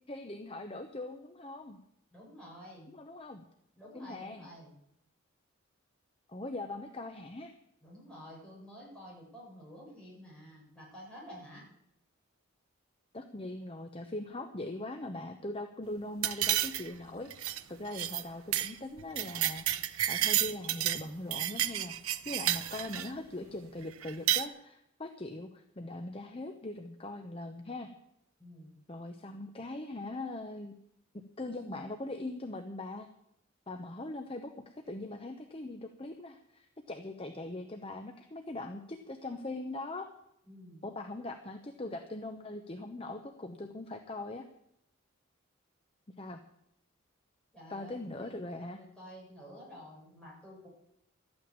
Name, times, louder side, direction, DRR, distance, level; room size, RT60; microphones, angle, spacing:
voice 1, 0.1-1.8 2.9-3.4 3.9-4.5 6.3-7.5 13.1-19.6 20.1-27.9 28.9-30.7 31.4-33.1 33.7-34.5 34.9-40.1 40.8-44.5 46.2-46.4 47.7-48.8, left 2 dB, 25° left, 6 dB, 0.8 m, -41 dB
voice 2, 2.1-2.9 3.8-4.7 7.8-11.6 28.4-28.7 40.4-40.8 47.5-50.7, equal, 5° left, -6 dB, 7.6 m, -50 dB
sound 1, 16.2-17.0 17.3-17.6 17.9-18.2 18.5-18.7 19.0-21.0 21.3-23.1 24.0-24.5, right 12 dB, 80° right, 0.7 m, -31 dB
13.0 x 8.8 x 8.7 m, 0.77 s
head